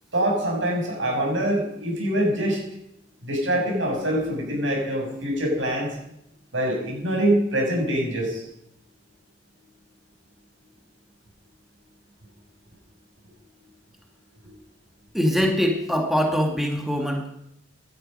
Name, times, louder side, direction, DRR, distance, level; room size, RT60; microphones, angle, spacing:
voice 1, 0.1-2.6 3.2-5.9 6.5-8.4, right 1 dB, 85° right, -1 dB, 7.1 m, -24 dB
voice 2, 15.1-17.3, equal, ahead, 2 dB, 1.8 m, -23 dB
17.5 x 12.0 x 5.4 m, 0.78 s
head